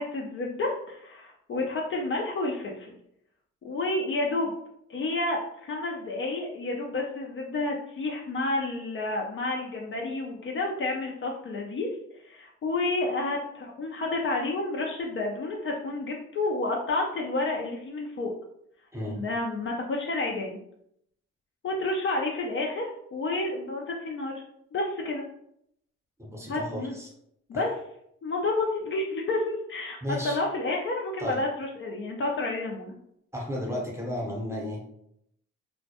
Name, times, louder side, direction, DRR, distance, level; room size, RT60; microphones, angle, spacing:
voice 1, 0.0-3.0 3.6-4.5 4.9-11.9 12.2-18.3 19.1-20.6 21.6-24.3 24.7-25.2 26.5-26.9 27.5-27.7 28.2-30.0 30.2-32.9, left 2 dB, 45° left, -1 dB, 0.4 m, -30 dB
voice 2, 26.2-27.1 27.5-27.6 30.0-30.4 31.2-31.4 33.3-35.0, left 1 dB, 10° right, -2 dB, 0.7 m, -34 dB
2.1 x 2.1 x 2.7 m, 0.74 s
cardioid pair, 90°, 30 cm